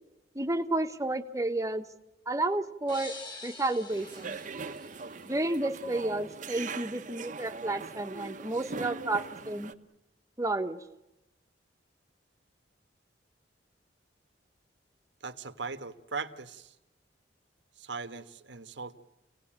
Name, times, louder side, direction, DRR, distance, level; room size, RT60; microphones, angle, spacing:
voice 1, 0.3-1.9 2.3-3.1 3.4-4.4 5.2-9.7 10.4-10.8, right 2 dB, 15° right, 7 dB, 1.2 m, -31 dB
sound 1, 2.9-5.7, left 3 dB, 25° left, 2.7 m, -46 dB
sound 2, 3.9-9.7, right 4 dB, 45° right, 1.0 m, -41 dB
voice 2, 15.2-16.7 17.8-18.9, right 4 dB, 75° right, 9 dB, 1.4 m, -39 dB
29.0 x 18.5 x 8.8 m, 1.0 s
head